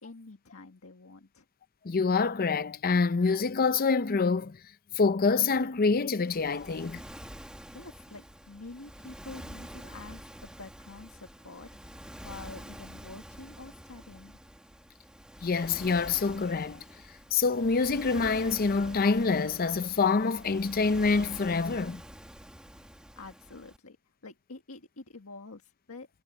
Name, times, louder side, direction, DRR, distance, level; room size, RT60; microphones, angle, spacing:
voice 1, 0.0-1.4 7.7-11.7 12.2-14.4 22.7-22.9 23.1-24.0 24.2-26.1, left 3 dB, 75° left, 1.8 m, -47 dB
voice 2, 1.8-4.6 4.9-7.0 15.4-16.8 17.3-22.0, left 4 dB, 45° left, 0.6 m, -26 dB
Waves surf, 6.3-23.8, equal, 5° right, 1.7 m, -47 dB
head